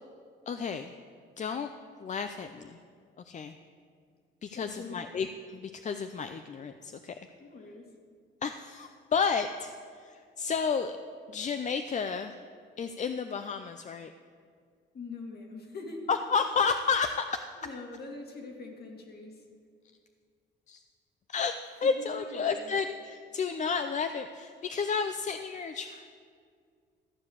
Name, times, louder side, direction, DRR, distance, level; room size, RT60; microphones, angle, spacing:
voice 1, 0.5-1.0 1.4-1.7 2.0-2.8 3.2-3.6 4.4-7.1 8.4-10.9 11.3-12.4 12.8-14.1 16.1-17.4 20.7-20.8 21.3-26.1, left 5 dB, 40° left, 8 dB, 0.5 m, -31 dB
voice 2, 4.5-5.0 7.4-7.9 14.9-16.1 17.6-19.5 21.8-22.7, left 3 dB, 55° left, 2 dB, 2.1 m, -43 dB
14.0 x 5.0 x 8.4 m, 2.2 s
cardioid pair, 90°, 20 cm